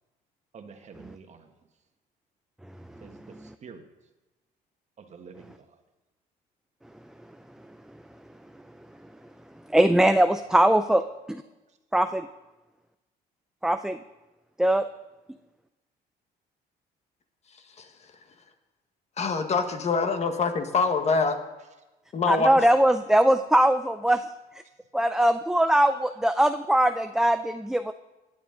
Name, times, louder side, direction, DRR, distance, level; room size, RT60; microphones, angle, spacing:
voice 1, 0.5-1.5 3.0-3.9 5.0-5.7, right 5 dB, 45° right, 6 dB, 1.4 m, -47 dB
voice 2, 9.7-11.0 11.3-11.4 11.9-12.3 13.6-14.0 14.6-14.8 22.3-24.2 24.9-27.9, right 1 dB, 5° right, 9 dB, 0.4 m, -21 dB
voice 3, 17.8-18.1 19.2-21.4 22.1-22.6, left 4 dB, 40° left, 7 dB, 1.3 m, -25 dB
16.5 x 9.3 x 3.9 m, 1.1 s
cardioid pair, 110°, 17 cm